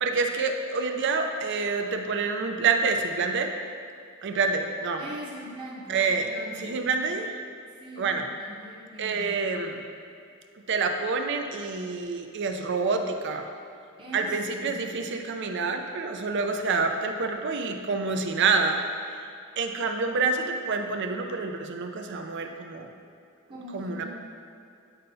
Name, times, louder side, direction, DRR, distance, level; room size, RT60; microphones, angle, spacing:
voice 1, 0.0-3.5 4.2-5.0 5.9-6.3 6.6-7.2 8.0-8.3 9.0-9.8 10.7-13.5 14.1-18.8 19.6-22.9 23.7-24.0, right 4 dB, 55° right, 5 dB, 0.5 m, -27 dB
voice 2, 5.0-7.0 7.8-9.4 14.0-14.8 23.5-24.0, equal, 25° right, -6 dB, 0.9 m, -42 dB
8.5 x 5.5 x 2.7 m, 2.4 s
head